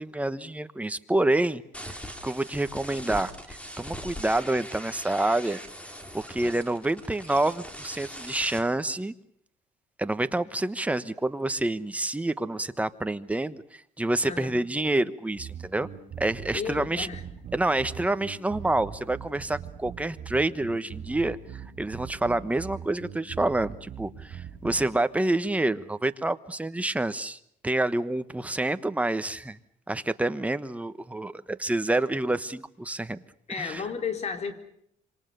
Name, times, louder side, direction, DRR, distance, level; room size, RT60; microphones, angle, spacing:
voice 1, 0.0-5.6 6.1-9.1 10.0-15.9 16.2-17.1 17.5-27.4 27.6-29.6 29.9-33.2 33.5-33.8, right 2 dB, 10° right, 11 dB, 1.1 m, -28 dB
sound 1, 1.7-8.6, equal, 10° left, 3.6 m, -41 dB
sound 2, 15.4-24.8, right 8 dB, 55° right, 6.5 m, -41 dB
voice 2, 16.5-17.2 33.5-34.5, left 6 dB, 45° left, 7 dB, 3.9 m, -33 dB
27.5 x 25.5 x 6.8 m, 0.70 s
cardioid pair, 130°, 16 cm